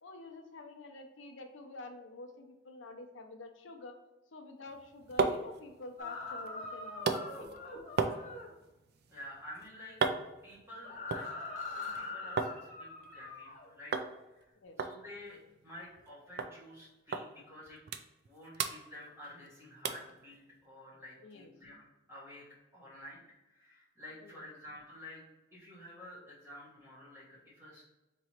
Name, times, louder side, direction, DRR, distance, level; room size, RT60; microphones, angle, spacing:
voice 1, 0.0-4.0 4.3-7.6 14.6-14.8 21.2-21.5 24.2-24.4, left 2 dB, 70° left, 4 dB, 0.6 m, -48 dB
sound 1, 4.7-12.6 12.9-13.5 13.9-14.1 14.4-14.5 14.8-16.1 16.4-16.5 17.1-17.3 17.6-18.3 18.5-19.5 19.8-20.1 20.6-20.7, right 4 dB, 50° right, 0.3 m, -36 dB
sound 2, 6.0-8.5 10.8-13.7, left 3 dB, 35° left, 0.8 m, -42 dB
voice 2, 9.1-10.0 10.4-11.3 11.7-13.9 14.3-17.8 18.2-22.4 22.7-25.2 25.5-27.8, left 1 dB, 10° right, -7 dB, 1.6 m, -51 dB
3.9 x 3.0 x 4.4 m, 1.0 s
head